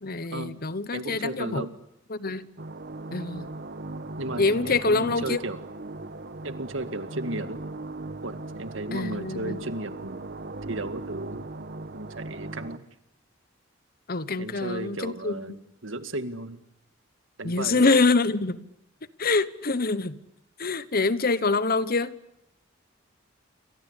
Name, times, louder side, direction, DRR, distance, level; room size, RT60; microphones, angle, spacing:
voice 1, 0.0-1.7 2.1-2.4 3.1-3.5 4.4-5.4 8.9-9.6 14.1-15.4 17.4-18.6 19.2-20.2 20.6-22.1, left 3 dB, 50° left, 1.1 m, -25 dB
voice 2, 0.9-1.8 4.2-5.6 6.4-7.6 8.2-10.2 10.7-11.5 11.9-12.9 14.4-15.6 15.8-16.6 17.4-18.0, right 2 dB, 75° right, 2.1 m, -34 dB
sound 1, 2.6-12.8, right 2 dB, 55° right, 1.2 m, -38 dB
28.5 x 24.0 x 8.3 m
head